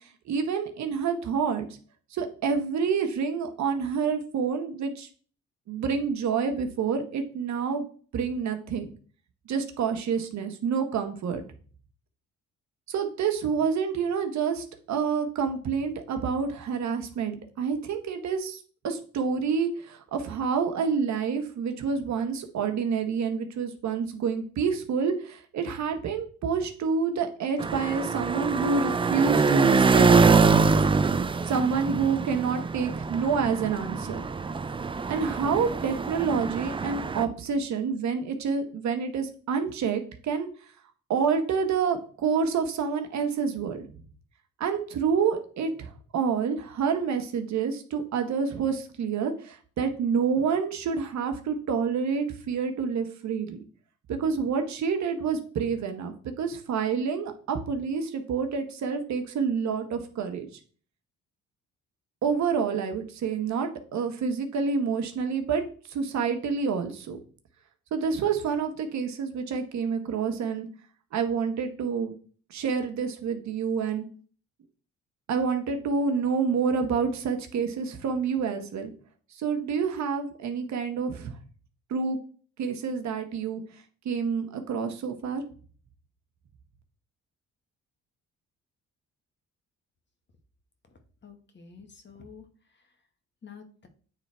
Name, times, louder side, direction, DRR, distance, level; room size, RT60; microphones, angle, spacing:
voice 1, 0.3-1.7 2.1-5.1 5.7-7.9 8.1-8.9 9.5-11.4 12.9-30.8 31.4-34.2 35.1-40.5 41.1-44.0 44.6-53.6 54.1-60.5 62.2-65.6 65.9-67.2 67.9-70.7 71.1-72.1 72.5-74.1 75.3-78.9 79.3-81.3 81.9-82.2 82.6-83.6 84.0-85.4, right 6 dB, 65° right, 5 dB, 1.2 m, -28 dB
sound 1, 27.6-37.2, right 4 dB, 20° right, 0.4 m, -24 dB
voice 2, 90.9-92.9 93.4-93.9, left 5 dB, 35° left, 6 dB, 1.3 m, -50 dB
8.8 x 3.4 x 4.3 m, 0.42 s
cardioid pair, 90°, 30 cm